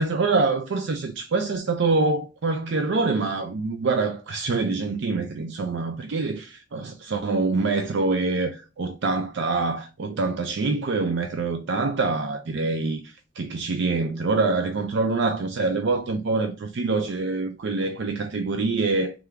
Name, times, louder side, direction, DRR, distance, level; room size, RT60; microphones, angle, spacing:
voice 1, 0.0-19.1, right 3 dB, 60° right, 0.4 m, -25 dB
3.6 x 3.4 x 3.3 m
head